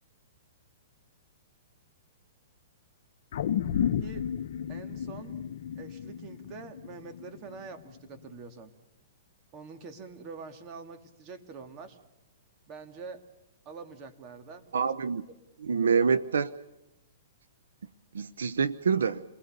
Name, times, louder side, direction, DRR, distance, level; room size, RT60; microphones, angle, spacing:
sound 1, 3.3-7.8 8.2-8.3, left 9 dB, 65° left, 1.0 m, -32 dB
voice 1, 4.7-5.4 5.7-8.7 9.5-12.0 12.7-13.2 13.6-14.9, right 4 dB, 35° right, 6 dB, 2.8 m, -45 dB
voice 2, 14.7-15.3 15.6-16.5 18.1-19.2, right 6 dB, 90° right, 15 dB, 0.9 m, -26 dB
28.5 x 21.0 x 6.8 m, 0.97 s
hypercardioid pair, 140°, 0 cm